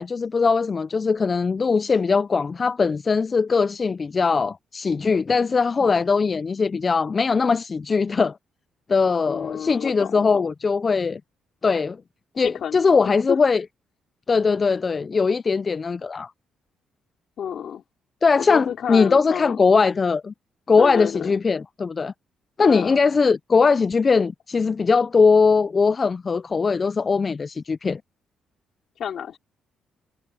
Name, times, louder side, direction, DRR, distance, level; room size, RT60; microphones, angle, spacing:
voice 1, 0.0-8.4 8.9-11.2 11.6-12.0 12.4-13.6 14.3-16.3 18.2-20.3 20.7-22.1 22.6-28.0, left 4 dB, 35° left, 0.3 m, -20 dB
voice 2, 9.3-10.5 12.3-12.8 13.3-13.4 17.4-17.8 18.4-19.6 20.8-21.3 22.6-23.0 29.0-29.4, left 8 dB, 65° left, 4.2 m, -30 dB
cardioid pair, 90°, 0 cm